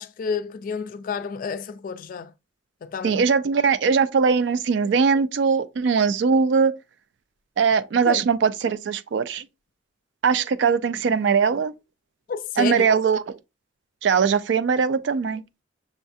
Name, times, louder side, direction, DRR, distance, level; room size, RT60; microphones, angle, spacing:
voice 1, 0.0-2.3 2.8-3.2 8.1-8.2 12.3-12.8, left 5 dB, 45° left, 0.3 m, -30 dB
voice 2, 3.0-6.7 7.6-9.5 10.2-11.7 12.6-13.4 14.0-15.4, right 5 dB, 65° right, 0.3 m, -21 dB
6.2 x 2.4 x 2.6 m
head